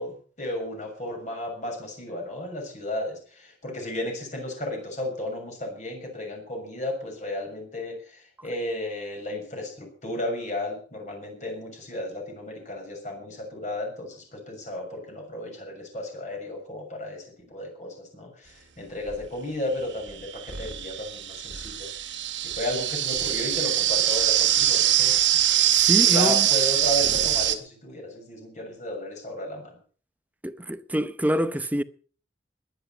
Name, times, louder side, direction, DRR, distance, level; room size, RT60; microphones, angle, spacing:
voice 1, 0.0-22.1 22.5-25.1 25.9-29.8, left 1 dB, 40° left, 6.6 m, -34 dB
sound 1, 19.1-19.2 20.1-27.6, right 12 dB, 85° right, 1.8 m, -23 dB
voice 2, 25.7-26.5 30.4-31.8, equal, 10° right, 0.7 m, -26 dB
21.5 x 10.5 x 5.7 m
head